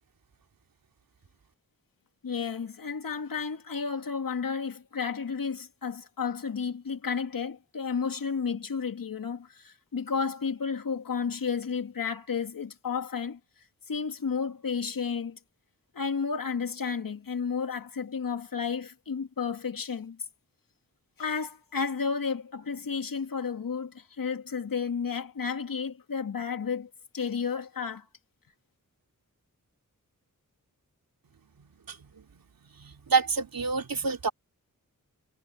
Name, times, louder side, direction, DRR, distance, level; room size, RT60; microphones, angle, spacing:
voice 1, 2.2-13.4 13.9-15.4 15.9-20.2 21.2-28.1, left 6 dB, 75° left, 2.3 m, -32 dB
voice 2, 31.9-32.4 32.8-34.3, right 4 dB, 80° right, 3.0 m, -28 dB
wide cardioid pair, 105°, 34 cm